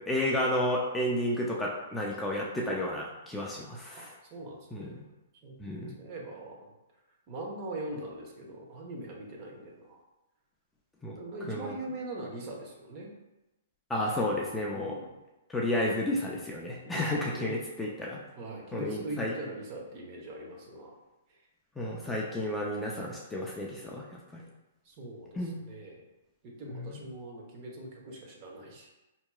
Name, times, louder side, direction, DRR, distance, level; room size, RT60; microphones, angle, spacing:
voice 1, 0.1-4.1 4.7-4.9 5.6-5.9 11.0-11.2 11.5-11.7 13.9-15.0 15.5-18.2 18.7-19.3 21.8-24.0 24.3-24.4 25.3-25.6 26.7-26.8, left 1 dB, 10° left, -3 dB, 0.4 m, -31 dB
voice 2, 4.3-4.9 5.4-6.7 7.3-10.0 11.1-13.1 14.7-15.2 16.8-17.6 18.3-20.9 21.3-21.4 22.3-22.4 24.8-26.0 26.4-28.9, right 1 dB, 40° right, -1 dB, 0.9 m, -42 dB
4.5 x 2.8 x 2.3 m, 0.99 s
hypercardioid pair, 135°, 0 cm